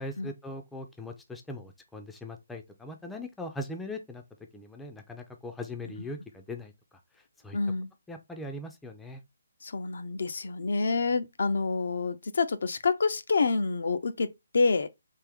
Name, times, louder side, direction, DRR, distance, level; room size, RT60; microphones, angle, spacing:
voice 1, 0.0-4.2 4.5-6.7 7.4-7.6 8.1-9.2, left 1 dB, 5° left, 0.5 m, -40 dB
voice 2, 7.5-7.9 9.6-14.9, left 4 dB, 65° left, 0.5 m, -28 dB
3.5 x 2.6 x 3.4 m
figure-of-eight pair, 155°, 0 cm